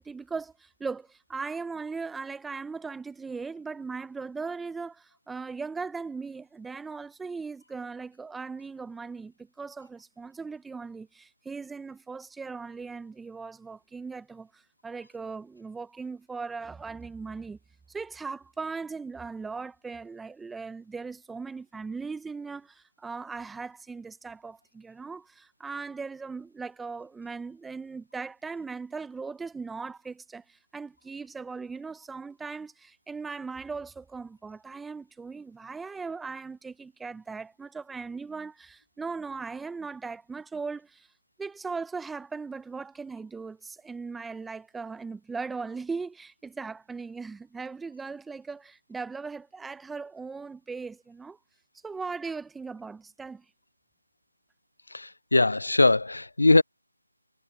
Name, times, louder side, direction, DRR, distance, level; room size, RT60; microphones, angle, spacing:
voice 1, 0.0-17.6 17.9-41.1 41.4-51.4 51.8-53.5, right 4 dB, 5° right, 0.6 m, -38 dB
voice 2, 54.9-56.6, left 2 dB, 80° left, 0.4 m, -21 dB
figure-of-eight pair, 165°, 0 cm